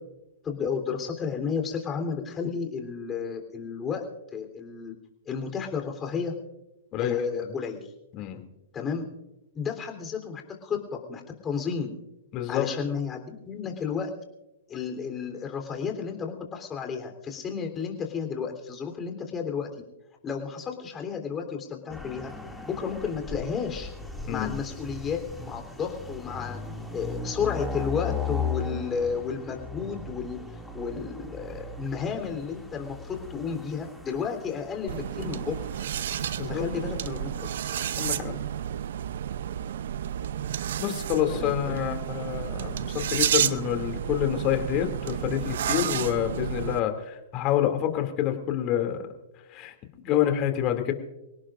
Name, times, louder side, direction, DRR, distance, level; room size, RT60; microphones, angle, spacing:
voice 1, 0.4-4.0 4.3-4.9 5.3-6.3 7.0-7.9 8.7-9.0 9.5-11.9 12.5-14.1 14.7-19.7 20.2-22.3 22.7-23.9 24.3-26.6 26.9-30.4 30.7-35.5 36.5-37.5 41.3-42.0, left 6 dB, 20° left, 4 dB, 3.5 m, -32 dB
voice 2, 12.3-12.7 24.2-24.6 36.4-36.6 38.0-38.4 40.8-49.1 49.5-49.7 50.0-50.9, left 11 dB, 35° left, 5 dB, 2.6 m, -27 dB
sound 1, 21.9-38.2, left 4 dB, ahead, 2.4 m, -38 dB
sound 2, 34.9-46.8, right 10 dB, 65° right, 0.6 m, -31 dB
27.0 x 17.5 x 2.5 m, 0.96 s
hypercardioid pair, 120°, 0 cm